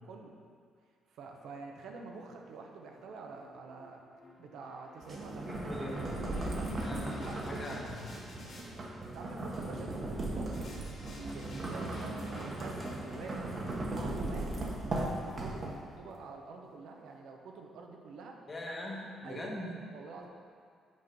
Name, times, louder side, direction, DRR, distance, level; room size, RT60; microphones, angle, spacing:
voice 1, 0.0-0.4 1.1-4.0 4.4-6.7 7.2-8.1 9.1-9.9 10.3-10.8 11.1-13.4 13.9-14.5 15.0-18.4 19.2-19.6 19.9-20.3, right 4 dB, 80° right, 2 dB, 0.7 m, -47 dB
sound 1, 2.5-8.7 10.5-16.8, left 2 dB, 65° left, 1.4 m, -55 dB
sound 2, 5.0-16.0, right 2 dB, 40° right, 1.0 m, -37 dB
voice 2, 5.5-6.1 6.8-8.1 18.5-19.7, left 1 dB, 30° left, -2 dB, 1.2 m, -41 dB
6.2 x 4.4 x 5.2 m, 2.2 s
cardioid pair, 90°, 0 cm